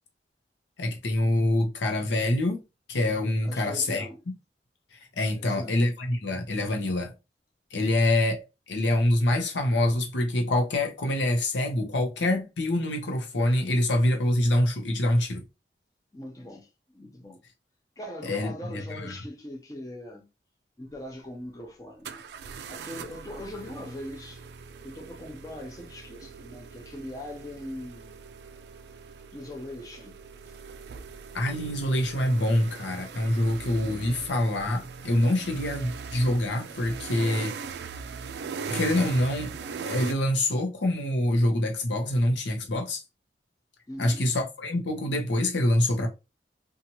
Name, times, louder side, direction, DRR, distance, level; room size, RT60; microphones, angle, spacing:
voice 1, 0.8-2.6 2.9-4.1 4.9-7.1 7.7-15.4 18.2-19.1 31.3-37.5 38.7-39.5 39.8-43.0 44.0-46.1, left 1 dB, 85° left, 0.7 m, -25 dB
voice 2, 3.4-4.2 5.3-5.8 16.1-17.4 18.0-20.3 20.8-22.3 22.7-24.5 24.8-28.1 29.3-30.2 30.4-30.6 43.9-44.3, left 1 dB, 20° left, 0.5 m, -41 dB
sound 1, 20.9-21.0 22.0-40.1, right 5 dB, 70° right, 0.3 m, -40 dB
2.8 x 2.4 x 2.7 m
head